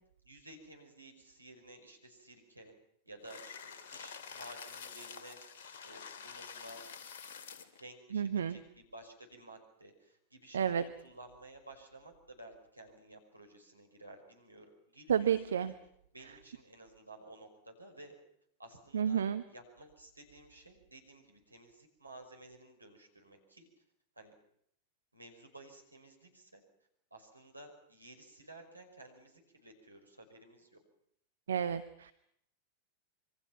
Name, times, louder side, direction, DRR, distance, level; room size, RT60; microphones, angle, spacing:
voice 1, 0.2-2.7 3.0-5.4 5.7-6.8 7.8-15.8 16.1-18.1 18.6-23.7 24.1-24.3 25.1-26.6 27.1-30.8, right 2 dB, 85° right, 3 dB, 5.2 m, -54 dB
sound 1, 3.2-7.8, left 6 dB, 55° left, 2.6 m, -48 dB
voice 2, 8.1-8.6 10.5-10.9 15.1-15.7 18.9-19.4 31.5-32.1, right 8 dB, 65° right, 12 dB, 0.9 m, -31 dB
26.5 x 24.0 x 5.9 m, 0.71 s
figure-of-eight pair, 90°, 0 cm